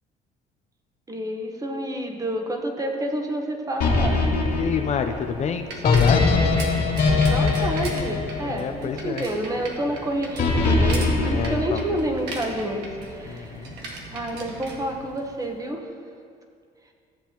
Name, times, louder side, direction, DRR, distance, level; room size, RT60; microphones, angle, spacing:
voice 1, 1.1-4.2 7.3-13.7 14.1-15.9, right 1 dB, 20° right, 3 dB, 1.1 m, -29 dB
sound 1, 3.8-9.1 10.4-12.3, left 3 dB, 65° left, 2.1 m, -22 dB
voice 2, 4.5-6.3 8.4-9.3 11.3-11.8 13.3-13.8, left 6 dB, 40° left, 7 dB, 0.5 m, -28 dB
Bicycle, 4.7-15.6, right 2 dB, 90° right, 1.4 m, -39 dB
14.5 x 7.4 x 2.9 m, 2.3 s
cardioid pair, 110°, 17 cm